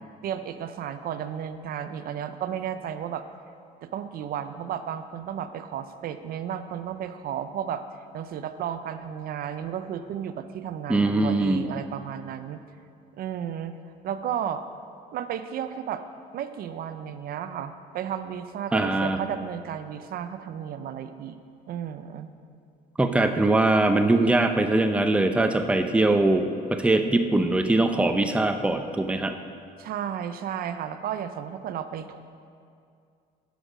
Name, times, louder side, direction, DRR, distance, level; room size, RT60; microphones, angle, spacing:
voice 1, 0.2-3.2 3.8-7.8 8.1-12.6 13.1-13.8 14.0-14.6 15.1-16.0 16.3-21.4 21.7-22.3 29.8-32.2, right 9 dB, 60° right, 10 dB, 0.5 m, -33 dB
voice 2, 10.9-11.6 18.7-19.2 23.0-29.3, right 2 dB, 5° right, 6 dB, 0.5 m, -22 dB
11.5 x 6.3 x 5.0 m, 2.3 s
cardioid pair, 110°, 17 cm